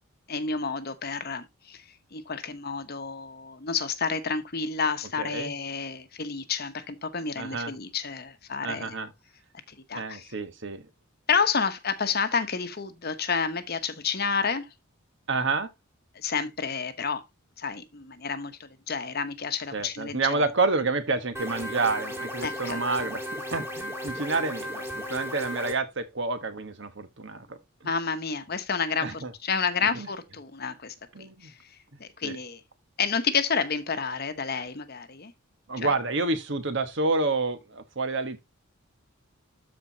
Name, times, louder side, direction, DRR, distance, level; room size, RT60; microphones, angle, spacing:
voice 1, 0.3-1.8 2.1-8.9 9.7-10.3 11.3-14.7 16.1-17.2 17.6-20.4 22.4-22.8 27.8-31.6 32.0-32.6 33.0-35.3 35.8-35.9, left 5 dB, 45° left, 1.0 m, -30 dB
voice 2, 5.2-5.5 7.4-7.7 8.6-9.1 9.9-10.9 15.3-15.7 19.7-27.9 29.0-29.3 29.8-30.1 31.1-31.5 32.2-32.4 35.7-38.4, right 3 dB, 55° right, 1.2 m, -29 dB
sound 1, 21.4-25.7, equal, 10° right, 1.8 m, -35 dB
13.0 x 4.4 x 2.8 m
head